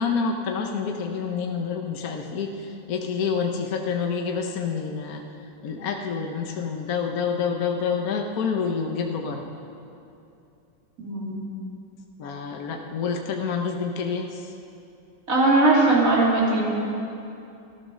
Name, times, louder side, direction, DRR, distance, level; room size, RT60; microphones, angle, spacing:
voice 1, 0.0-5.2 5.6-9.4 12.2-14.5, left 5 dB, 55° left, 3 dB, 1.2 m, -28 dB
voice 2, 11.0-11.4 15.3-16.6, right 2 dB, 45° right, -5 dB, 3.3 m, -19 dB
13.5 x 13.0 x 6.4 m, 2.7 s
omnidirectional pair, 2.1 m